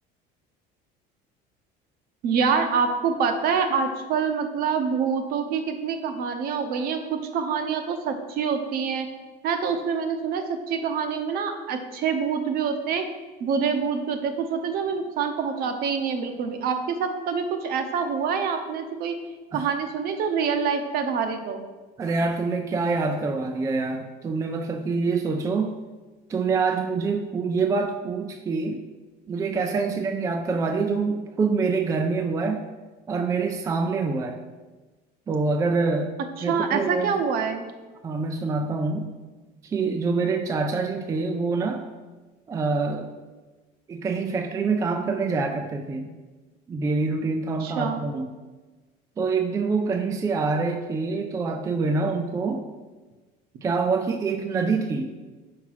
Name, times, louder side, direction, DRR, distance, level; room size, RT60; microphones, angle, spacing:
voice 1, 2.2-9.1 9.4-13.1 13.4-19.2 19.5-21.6 36.5-37.7 47.6-48.0, right 6 dB, 50° right, 7 dB, 0.7 m, -26 dB
voice 2, 22.0-25.7 26.3-28.8 29.3-32.6 33.1-34.4 35.3-36.1 36.4-37.1 38.0-39.2 39.6-41.8 42.5-43.1 43.9-46.1 46.7-48.3 49.2-52.6 53.6-55.1, right 4 dB, 15° right, 5 dB, 0.3 m, -26 dB
4.7 x 4.7 x 5.6 m, 1.3 s
cardioid pair, 150°, 19 cm